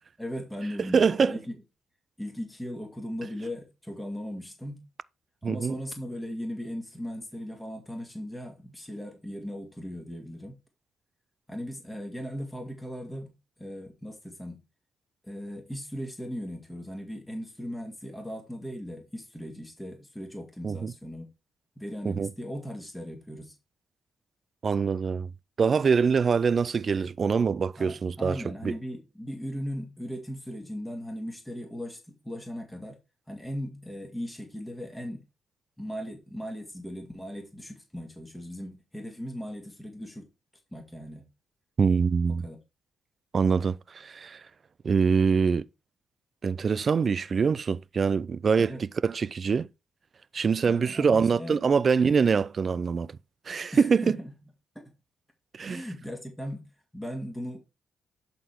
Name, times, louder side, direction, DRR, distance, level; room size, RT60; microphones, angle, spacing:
voice 1, 0.2-1.6 2.2-4.9 5.4-10.6 11.5-14.6 15.2-21.3 21.8-23.5 27.8-33.0 33.3-35.2 35.8-40.3 40.7-41.3 42.4-42.6 48.6-48.8 50.6-51.6 53.7-54.3 54.7-54.8 55.6-57.6, equal, 10° left, 2.3 m, -38 dB
voice 2, 0.9-1.4 5.4-5.8 20.6-20.9 22.1-22.3 24.6-25.3 25.6-28.4 28.6-28.7 41.8-42.4 43.3-44.4 44.8-45.6 46.4-49.7 50.3-53.2 53.5-54.2 55.5-55.8, right 5 dB, 50° right, 0.4 m, -24 dB
11.0 x 4.2 x 4.6 m
supercardioid pair, 65°, 0 cm